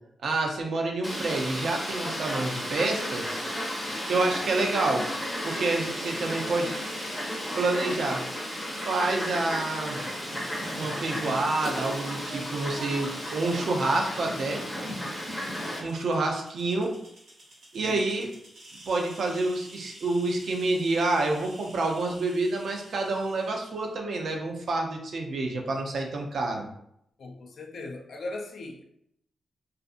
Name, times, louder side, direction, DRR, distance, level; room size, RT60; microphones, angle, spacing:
voice 1, 0.2-3.4 4.1-5.1 5.4-6.7 7.6-8.2 8.8-10.0 10.8-14.6 15.8-17.0 17.7-18.3 18.9-26.7, right 2 dB, 60° right, 2 dB, 0.5 m, -28 dB
Fowl, 1.0-15.8, equal, 10° left, 0.7 m, -34 dB
sound 1, 5.5-23.9, right 1 dB, 80° right, 1.1 m, -49 dB
voice 2, 27.2-28.8, left 2 dB, 60° left, 1 dB, 0.4 m, -38 dB
2.5 x 2.5 x 2.5 m, 0.74 s
wide cardioid pair, 155°, 0 cm